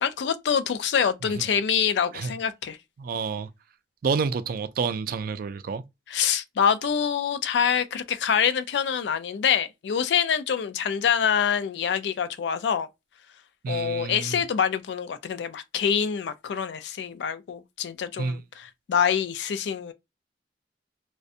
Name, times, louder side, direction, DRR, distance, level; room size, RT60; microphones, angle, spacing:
voice 1, 0.0-2.8 6.1-12.9 13.7-19.9, left 7 dB, 80° left, 0.3 m, -25 dB
voice 2, 3.0-3.5 4.0-5.8 13.6-14.4 18.2-18.4, right 5 dB, 55° right, 0.3 m, -29 dB
2.4 x 2.1 x 2.6 m
head